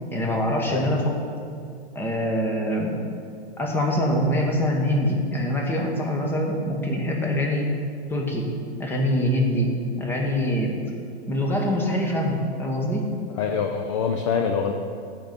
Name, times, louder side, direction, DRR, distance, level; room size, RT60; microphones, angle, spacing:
voice 1, 0.1-1.2 1.9-3.0 3.6-7.7 8.1-8.5 8.8-9.7 10.0-10.8 11.3-13.1, equal, 5° left, 0 dB, 1.0 m, -24 dB
voice 2, 13.4-14.7, left 6 dB, 30° left, 5 dB, 0.4 m, -25 dB
8.8 x 5.3 x 7.2 m, 2.4 s
hypercardioid pair, 150°, 32 cm